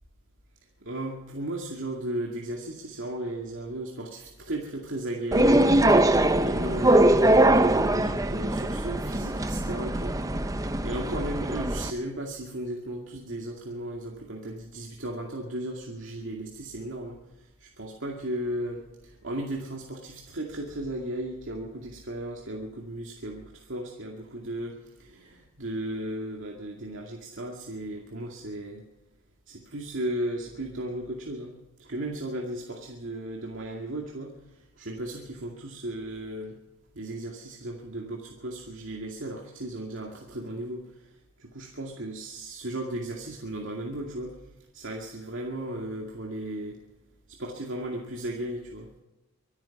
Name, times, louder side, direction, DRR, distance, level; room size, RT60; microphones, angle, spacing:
voice 1, 0.9-10.2 10.8-17.2 17.6-28.8 29.5-31.5 31.8-34.3 34.8-36.6 36.9-41.1 41.4-44.4 44.7-46.8 47.3-49.0, right 1 dB, 70° right, 0 dB, 2.2 m, -35 dB
sound 1, 5.3-11.9, right 1 dB, 15° right, 0.7 m, -22 dB
24.5 x 9.6 x 5.9 m, 1.0 s
head